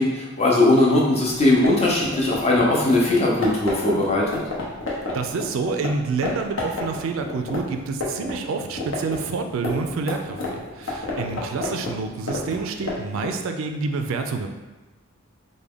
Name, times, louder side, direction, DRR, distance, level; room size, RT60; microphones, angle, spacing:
voice 1, 0.0-4.4, left 2 dB, 30° left, -3 dB, 0.6 m, -19 dB
sound 1, 1.2-5.9 6.2-6.3 6.6-8.3 8.6-13.4, left 3 dB, 70° left, 0.7 m, -30 dB
voice 2, 4.9-14.5, right 4 dB, 70° right, 6 dB, 0.3 m, -28 dB
3.4 x 2.1 x 3.5 m, 1.2 s
head